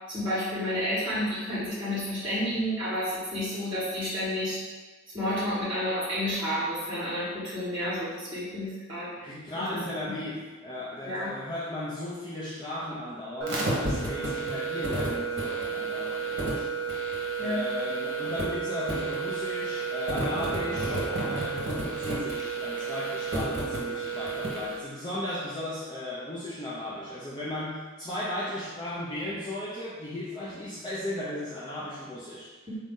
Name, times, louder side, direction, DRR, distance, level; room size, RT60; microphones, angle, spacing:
voice 1, 0.1-4.6 5.1-9.3 9.6-9.7 10.0-10.1 11.0-11.3 17.4-17.6 32.7-32.8, equal, 25° right, -11 dB, 1.2 m, -30 dB
voice 2, 9.2-16.7 17.4-32.5, left 1 dB, 20° left, -7 dB, 0.5 m, -36 dB
sound 1, 13.4-24.7, right 3 dB, 60° right, 0.9 m, -31 dB
4.0 x 2.6 x 3.6 m, 1.3 s
head